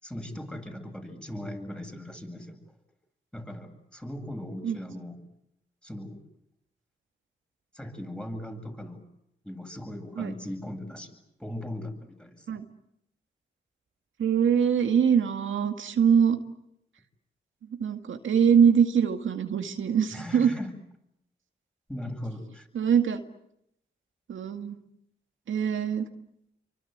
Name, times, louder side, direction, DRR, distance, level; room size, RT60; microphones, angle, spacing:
voice 1, 0.0-2.6 3.3-5.2 5.8-6.2 7.7-9.0 9.4-12.5 20.1-20.8 21.9-22.7, left 1 dB, 5° left, 4 dB, 7.9 m, -39 dB
voice 2, 14.2-16.4 17.8-20.5 22.7-23.2 24.3-24.8 25.5-26.0, right 7 dB, 85° right, 5 dB, 2.1 m, -23 dB
28.5 x 25.0 x 8.1 m, 0.78 s
cardioid pair, 55°, 20 cm